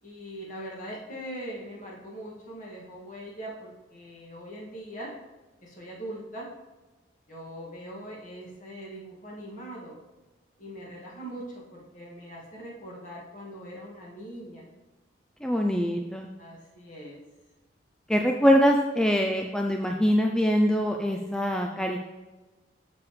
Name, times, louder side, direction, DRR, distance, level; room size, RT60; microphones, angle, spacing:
voice 1, 0.0-5.1 5.6-6.5 7.3-10.0 10.6-14.7 16.4-17.2, right 1 dB, 45° left, -4 dB, 2.1 m, -41 dB
voice 2, 15.4-16.3 18.1-22.0, equal, 5° left, 2 dB, 0.4 m, -23 dB
6.9 x 6.9 x 3.2 m, 1.2 s
head